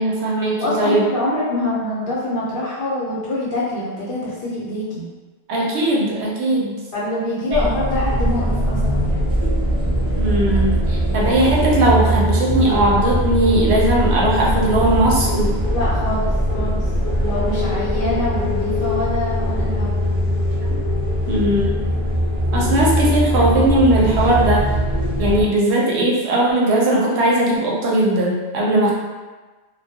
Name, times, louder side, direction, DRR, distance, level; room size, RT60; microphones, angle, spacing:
voice 1, 0.0-1.1 5.5-6.8 7.5-7.6 10.2-15.6 21.3-21.8 22.5-24.7 25.2-28.9, right 1 dB, 70° right, -3 dB, 0.8 m, -18 dB
voice 2, 0.6-5.1 6.9-9.5 15.7-16.8 17.2-20.0 28.6-28.7, left 1 dB, 55° left, -8 dB, 0.8 m, -25 dB
sound 1, 7.5-25.4, equal, 10° right, 0.9 m, -21 dB
2.2 x 2.1 x 2.7 m, 1.3 s
omnidirectional pair, 1.2 m